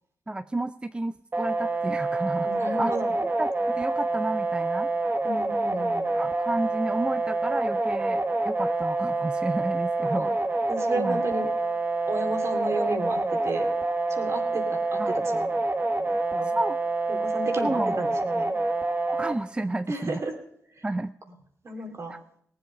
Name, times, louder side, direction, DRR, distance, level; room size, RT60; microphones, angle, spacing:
voice 1, 0.3-2.9 3.2-4.9 6.2-10.3 11.0-11.2 15.0-15.1 16.6-16.8 17.6-18.0 19.1-20.2 20.8-21.1 22.1-22.2, right 2 dB, 15° right, 11 dB, 0.4 m, -31 dB
sound 1, 1.3-19.3, right 2 dB, 30° right, 1.2 m, -27 dB
voice 2, 2.4-3.2 5.2-6.1 10.0-10.3 10.7-11.5 12.1-13.7 14.1-15.5 16.0-16.5 17.1-18.6 19.9-20.4 20.7-20.9 21.6-22.2, right 2 dB, 50° right, 3 dB, 2.7 m, -33 dB
18.5 x 7.7 x 5.2 m, 0.65 s
supercardioid pair, 50°, 6 cm